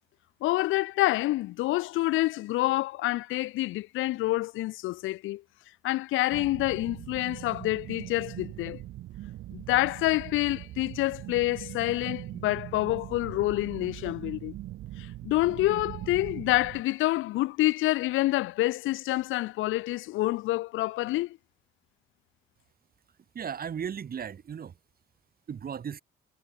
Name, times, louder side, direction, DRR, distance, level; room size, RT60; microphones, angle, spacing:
voice 1, 0.4-5.4 5.8-8.8 9.5-14.5 15.2-21.4, left 17 dB, 90° left, 0.7 m, -27 dB
sound 1, 6.3-16.8, right 15 dB, 80° right, 1.1 m, -41 dB
voice 2, 23.3-24.7 25.5-26.0, right 7 dB, 50° right, 2.2 m, -36 dB
cardioid pair, 90°, 20 cm